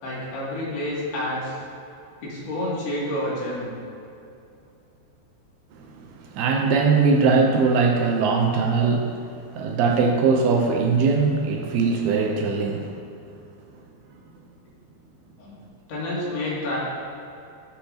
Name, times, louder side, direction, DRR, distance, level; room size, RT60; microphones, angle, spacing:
voice 1, 0.0-1.5 2.2-3.7 15.4-15.5 15.9-16.8, left 1 dB, 65° left, -6 dB, 4.4 m, -29 dB
voice 2, 6.3-9.2 9.6-12.9, right 4 dB, 75° right, 2 dB, 2.4 m, -20 dB
15.0 x 8.0 x 2.9 m, 2.7 s
omnidirectional pair, 5.1 m